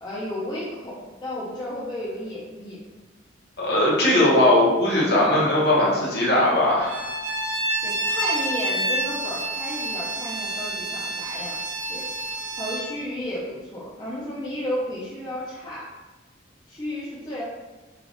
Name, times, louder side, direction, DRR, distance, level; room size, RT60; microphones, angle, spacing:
voice 1, 0.0-2.8 7.8-11.6 11.9-12.1 12.6-15.9 16.7-17.4, left 1 dB, 25° left, -7 dB, 0.6 m, -33 dB
voice 2, 3.6-7.1, left 1 dB, 60° left, -5 dB, 1.0 m, -19 dB
Bowed string instrument, 6.8-12.9, right 2 dB, 70° right, 0.9 m, -28 dB
3.3 x 2.4 x 3.8 m, 1.2 s
head